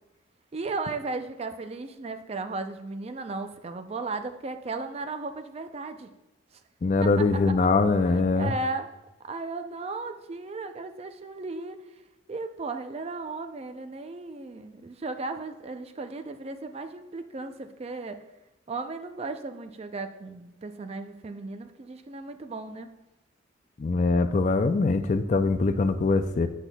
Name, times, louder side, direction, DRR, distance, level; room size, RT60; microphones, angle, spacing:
voice 1, 0.5-6.1 7.0-7.6 8.4-8.9 9.2-11.8 12.3-18.2 18.7-22.9, right 3 dB, 30° right, 8 dB, 0.4 m, -35 dB
voice 2, 6.8-8.5 23.8-26.5, left 3 dB, 40° left, 9 dB, 0.4 m, -23 dB
8.1 x 7.3 x 2.2 m, 0.97 s
head